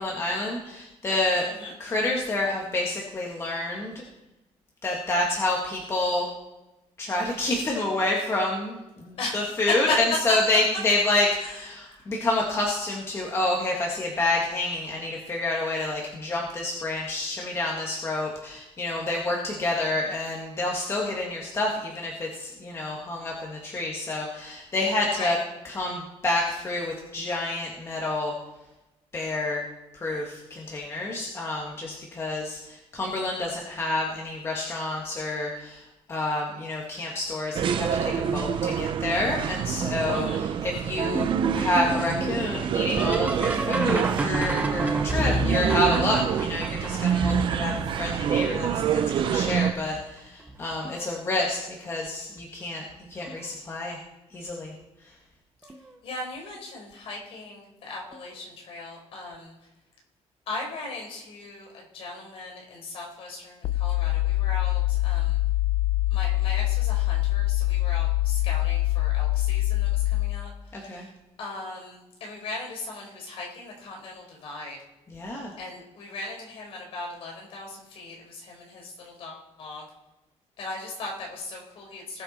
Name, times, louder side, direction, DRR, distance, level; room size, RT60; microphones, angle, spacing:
voice 1, 0.0-1.5 1.8-4.0 4.8-6.3 7.0-25.4 25.6-28.4 29.1-29.6 30.0-35.8 36.1-41.3 41.5-52.8 53.1-54.0 54.3-54.7 70.7-71.1 75.1-75.5, left 2 dB, 25° left, -1 dB, 1.8 m, -28 dB
sound 1, 37.5-49.7, right 8 dB, 50° right, 0.8 m, -27 dB
sound 2, 41.1-48.8 49.5-50.0 50.5-51.1 52.4-52.5 53.2-53.5 55.7-55.8 58.1-58.2, right 2 dB, 15° right, 1.1 m, -30 dB
voice 2, 56.0-59.5 60.5-65.4 66.1-71.1 71.4-74.8 75.6-79.8 80.6-82.2, left 2 dB, 55° left, 0 dB, 4.7 m, -38 dB
sound 3, 63.6-70.4, left 16 dB, 80° left, 0.7 m, -24 dB
20.0 x 6.8 x 4.4 m, 0.98 s
cardioid pair, 170°, 11 cm